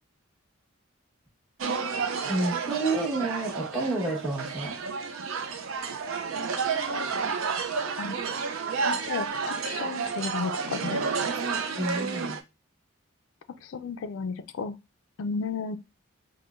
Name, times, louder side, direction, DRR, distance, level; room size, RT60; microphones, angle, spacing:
sound 1, 1.6-12.4, right 5 dB, 70° right, 0.5 m, -31 dB
voice 1, 2.3-4.8 11.8-12.4, right 2 dB, ahead, 1.1 m, -29 dB
voice 2, 8.9-11.0 13.6-14.8 15.2-15.8, left 5 dB, 70° left, 0.4 m, -33 dB
5.5 x 2.1 x 2.4 m
head